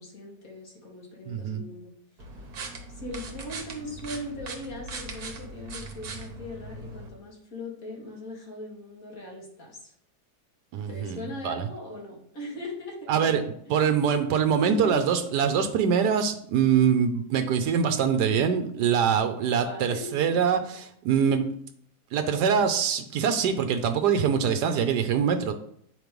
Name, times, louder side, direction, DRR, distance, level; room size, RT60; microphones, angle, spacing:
voice 1, 0.0-1.9 2.9-9.9 10.9-13.7 14.5-15.0 19.5-20.1, left 1 dB, 55° left, -3 dB, 2.3 m, -39 dB
voice 2, 1.3-1.6 10.7-11.6 13.1-13.4 13.7-21.4 22.1-25.5, right 7 dB, 90° right, 7 dB, 1.2 m, -24 dB
sound 1, 2.2-7.1, right 3 dB, 70° right, 1.5 m, -40 dB
9.1 x 3.1 x 5.1 m, 0.68 s
omnidirectional pair, 1.7 m